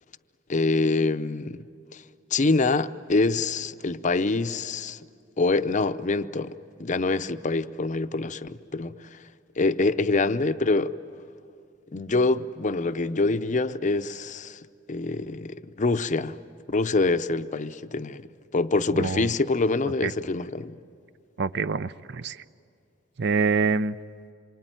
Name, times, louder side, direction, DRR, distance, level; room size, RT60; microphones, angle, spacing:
voice 1, 0.5-1.6 2.3-5.0 5.4-9.2 9.6-10.9 11.9-14.6 14.9-16.4 16.7-18.2 18.5-20.8, left 3 dB, 40° left, 0.6 m, -25 dB
voice 2, 19.0-19.3 20.0-20.1 21.4-22.4 23.2-23.9, right 5 dB, 60° right, 0.6 m, -25 dB
27.0 x 24.0 x 9.2 m
head